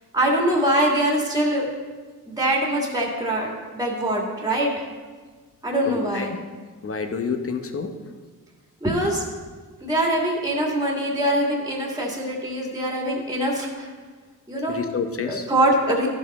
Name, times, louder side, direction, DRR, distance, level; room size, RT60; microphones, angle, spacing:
voice 1, 0.1-1.7 2.3-4.8 5.6-6.3 8.8-9.2 9.8-13.9 14.5-14.8 15.2-16.1, right 1 dB, 10° right, -2 dB, 2.0 m, -23 dB
voice 2, 5.8-6.3 6.8-7.9 14.7-15.5, left 5 dB, 40° left, 6 dB, 1.0 m, -28 dB
13.5 x 5.5 x 4.2 m, 1.5 s
cardioid pair, 100°, 34 cm